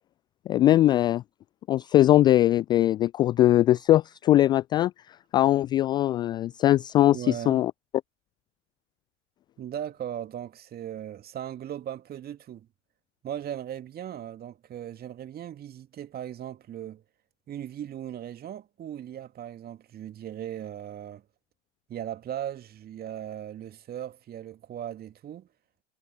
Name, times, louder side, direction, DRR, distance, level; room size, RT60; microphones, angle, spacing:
voice 1, 0.5-1.2 1.7-4.9 5.3-7.7, left 13 dB, 15° left, 0.3 m, -21 dB
voice 2, 7.1-7.7 9.6-12.7 13.2-17.0 17.5-21.2 21.9-25.5, right 10 dB, 25° right, 2.5 m, -38 dB
figure-of-eight pair, 90°, 36 cm